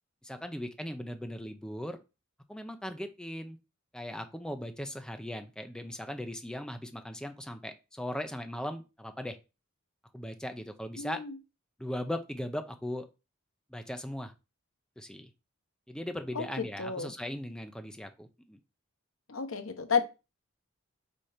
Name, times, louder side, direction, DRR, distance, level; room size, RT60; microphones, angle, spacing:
voice 1, 0.2-2.0 2.5-3.6 3.9-9.4 10.1-11.2 11.8-13.1 13.7-14.3 15.0-15.3 15.9-18.6, left 1 dB, 5° left, 0.6 m, -38 dB
voice 2, 11.0-11.4 16.3-17.1 19.3-20.0, left 6 dB, 75° left, 0.9 m, -32 dB
4.3 x 4.3 x 5.0 m
head